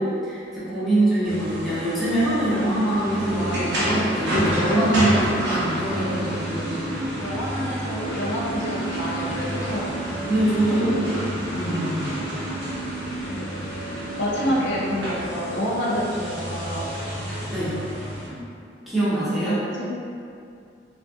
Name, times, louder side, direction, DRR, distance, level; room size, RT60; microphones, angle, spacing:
voice 1, 0.0-6.9 7.1-7.2 10.3-11.0 11.5-12.4 13.2-13.3 17.5-17.7 18.3-18.4 18.9-19.5, right 1 dB, ahead, -12 dB, 0.7 m, -24 dB
sound 1, 1.2-18.3, right 1 dB, 80° right, 0.8 m, -29 dB
voice 2, 7.2-9.9 10.7-11.0 13.3-13.7 14.2-16.9 19.4-19.9, equal, 75° left, -5 dB, 0.5 m, -28 dB
2.6 x 2.3 x 2.5 m, 2.5 s
head